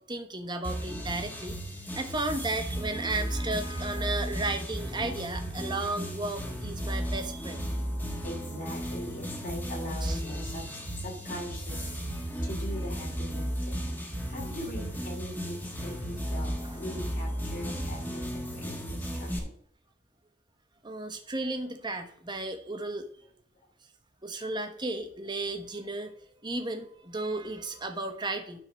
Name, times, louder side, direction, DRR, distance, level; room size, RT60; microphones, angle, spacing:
voice 1, 0.0-1.6 1.9-7.6 10.0-10.2 16.6-16.9 20.8-23.1 24.2-26.1 26.4-28.6, right 2 dB, 25° right, 6 dB, 1.0 m, -34 dB
sound 1, 0.6-19.4, equal, 10° left, 1.2 m, -35 dB
voice 2, 8.2-19.5, left 1 dB, 40° left, -1 dB, 2.7 m, -40 dB
10.5 x 3.8 x 6.3 m, 0.62 s
head